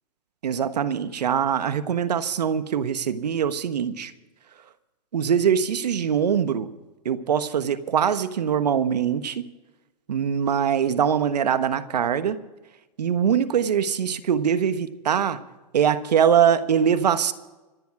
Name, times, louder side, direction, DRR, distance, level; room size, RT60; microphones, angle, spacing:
voice 1, 0.4-4.1 5.1-6.7 7.0-9.5 10.1-12.4 13.0-15.4 15.7-17.3, right 8 dB, 90° right, 12 dB, 1.3 m, -22 dB
26.0 x 9.8 x 4.8 m, 1.1 s
hypercardioid pair, 135°, 20 cm